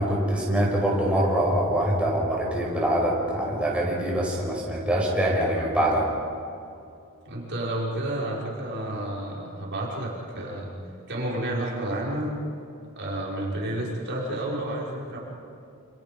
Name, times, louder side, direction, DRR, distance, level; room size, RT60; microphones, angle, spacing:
voice 1, 0.0-6.1, right 1 dB, 5° right, -4 dB, 6.0 m, -24 dB
voice 2, 7.3-10.7 11.1-12.3 13.0-15.2, right 1 dB, 55° right, -4 dB, 5.8 m, -30 dB
29.0 x 29.0 x 5.4 m, 2.5 s
head